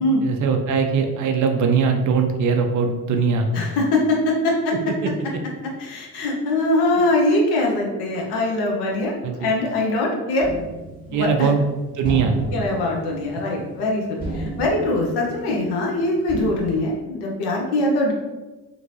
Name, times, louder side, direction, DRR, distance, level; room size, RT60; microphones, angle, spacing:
voice 1, 0.2-3.5 5.0-5.1 9.2-9.5 11.1-11.6 11.9-12.4, right 5 dB, 40° right, 5 dB, 0.5 m, -21 dB
voice 2, 3.5-4.7 5.8-10.5 11.1-11.5 12.5-18.1, left 2 dB, 60° left, -1 dB, 0.9 m, -22 dB
sound 1, 10.4-11.6 12.0-13.9 14.2-15.9 16.3-16.7, right 1 dB, 20° left, 1.5 m, -33 dB
2.9 x 2.6 x 2.7 m, 1.2 s
figure-of-eight pair, 45°, 46 cm